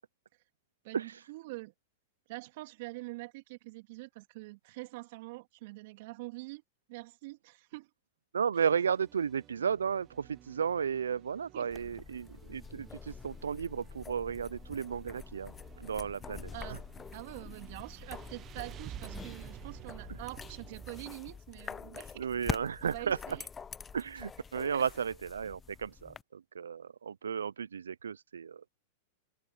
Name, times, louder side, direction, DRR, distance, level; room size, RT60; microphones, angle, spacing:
voice 1, 0.8-1.7 2.3-6.6 6.9-7.9 8.6-8.7 11.5-11.8 16.5-16.8 17.1-22.3 22.6-23.5 24.7-24.8, right 22 dB, 60° right, 2.8 m, -45 dB
voice 2, 8.3-16.8 22.2-23.2 23.9-28.6, right 7 dB, 90° right, 0.4 m, -34 dB
sound 1, 8.6-21.0, right 12 dB, 35° right, 0.8 m, -52 dB
sound 2, 11.7-26.2, left 6 dB, 20° left, 0.5 m, -45 dB
open air
hypercardioid pair, 110°, 0 cm